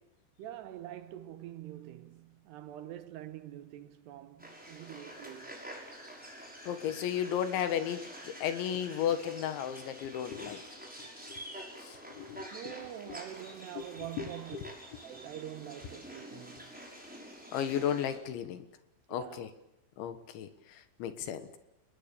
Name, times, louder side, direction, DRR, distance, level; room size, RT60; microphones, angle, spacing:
voice 1, 0.4-5.7 12.5-14.6 15.0-16.7 19.1-19.5, right 12 dB, 70° right, 2.9 m, -45 dB
sound 1, 4.4-18.2, right 1 dB, ahead, 5.8 m, -48 dB
voice 2, 6.7-10.6 11.0-11.4 11.8-12.7 13.1-13.2 13.8-13.9 14.2-14.7 17.5-18.7 19.1-19.5 20.0-21.6, left 9 dB, 75° left, 3.8 m, -35 dB
30.0 x 20.5 x 7.0 m
omnidirectional pair, 5.4 m